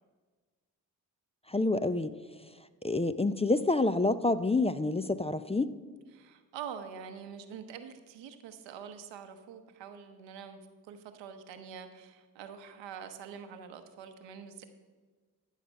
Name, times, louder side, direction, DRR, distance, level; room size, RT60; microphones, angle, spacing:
voice 1, 1.5-2.1 2.8-5.7, left 2 dB, 15° left, 12 dB, 0.4 m, -28 dB
voice 2, 6.1-10.6 10.9-14.6, right 7 dB, 85° right, 7 dB, 0.9 m, -45 dB
14.0 x 5.8 x 5.3 m, 1.4 s
supercardioid pair, 40°, 43 cm